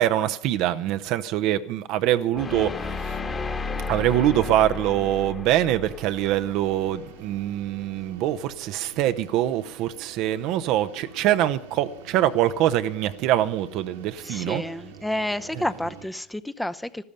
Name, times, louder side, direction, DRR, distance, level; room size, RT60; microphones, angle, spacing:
voice 1, 0.0-3.2 3.9-14.6, right 12 dB, 60° right, 0.7 m, -24 dB
sound 1, 2.3-7.4, left 4 dB, 30° left, 1.8 m, -33 dB
sound 2, 5.8-16.1, right 6 dB, 80° right, 1.8 m, -46 dB
voice 2, 14.2-17.0, left 1 dB, 5° left, 0.7 m, -30 dB
14.0 x 12.5 x 6.7 m
hypercardioid pair, 70°, 0 cm